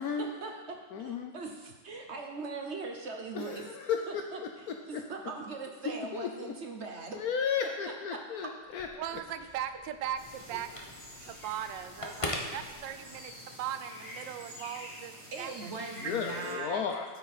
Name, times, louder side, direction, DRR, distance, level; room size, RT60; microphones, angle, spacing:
voice 1, 0.0-3.7 4.1-7.2 7.6-8.5 10.5-10.6 15.3-16.8, right 3 dB, 50° right, 3 dB, 0.8 m, -41 dB
voice 2, 0.9-1.3 3.3-4.2 4.7-5.0 6.1-6.5 7.2-8.9 16.0-17.0, left 7 dB, 65° left, 4 dB, 1.0 m, -33 dB
Telephone, 8.6-13.4, left 2 dB, 35° left, 0.5 m, -42 dB
voice 3, 9.0-10.9 11.2-15.1 15.4-15.7, right 10 dB, 85° right, 10 dB, 1.3 m, -39 dB
sound 1, 10.2-16.5, left 1 dB, 15° left, 2.3 m, -48 dB
13.0 x 6.2 x 4.1 m, 1.3 s
omnidirectional pair, 1.9 m